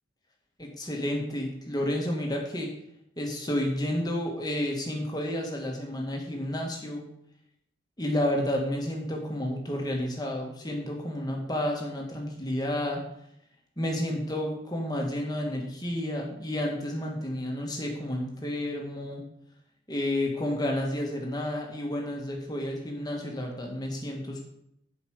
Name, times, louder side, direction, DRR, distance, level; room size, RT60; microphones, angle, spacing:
voice 1, 0.6-2.7 3.2-7.0 8.0-13.0 13.8-19.2 19.9-24.4, left 1 dB, 20° left, 0 dB, 1.6 m, -31 dB
8.1 x 5.1 x 6.4 m, 0.77 s
head